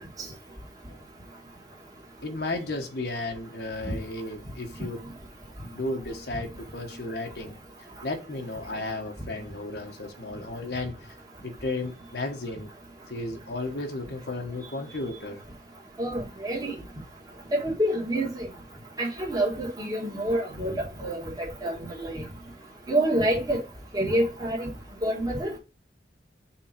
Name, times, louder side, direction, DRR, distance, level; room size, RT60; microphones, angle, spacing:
voice 1, 2.2-5.0 5.7-7.5 8.0-11.1 11.4-12.7 13.1-15.4, left 2 dB, 65° left, 1.1 m, -34 dB
voice 2, 16.0-16.7 17.5-18.5 19.0-20.7 21.0-21.7 22.0-22.1 22.9-23.6 23.9-24.7 25.0-25.5, right 1 dB, 20° right, 1.8 m, -27 dB
5.8 x 3.8 x 5.1 m
head